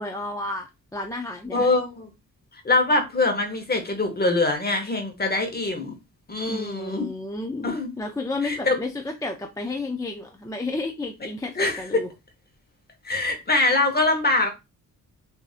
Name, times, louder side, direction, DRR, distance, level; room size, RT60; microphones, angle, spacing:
voice 1, 0.0-1.7 6.5-12.1, left 2 dB, 10° left, 0.3 m, -32 dB
voice 2, 1.5-2.1 2.5-6.0 6.3-7.1 7.6-7.9 8.4-8.8 11.6-12.0 13.0-14.5, left 2 dB, 30° left, 0.9 m, -23 dB
6.1 x 2.6 x 2.4 m
wide cardioid pair, 180°, 35 cm